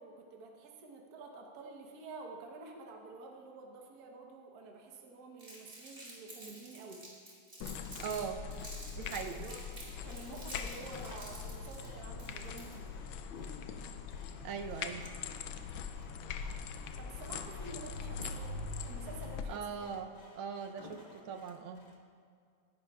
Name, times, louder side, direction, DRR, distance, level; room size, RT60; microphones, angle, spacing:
voice 1, 0.0-7.1 9.4-9.6 10.0-12.9 17.0-18.6 18.8-19.9, right 3 dB, 55° right, 1 dB, 1.4 m, -49 dB
Crumpling crinkling, 5.4-8.2 8.5-12.9, right 1 dB, 25° right, 2.7 m, -50 dB
sound 1, 7.6-19.4, left 5 dB, 75° left, 1.3 m, -42 dB
voice 2, 8.0-8.4 8.9-9.5 14.4-15.0 19.5-21.0 21.3-21.8, right 6 dB, 80° right, 6 dB, 1.6 m, -40 dB
Sawing, 9.5-22.0, left 1 dB, 35° left, 0.7 m, -57 dB
16.0 x 10.5 x 2.3 m, 2.3 s
omnidirectional pair, 2.3 m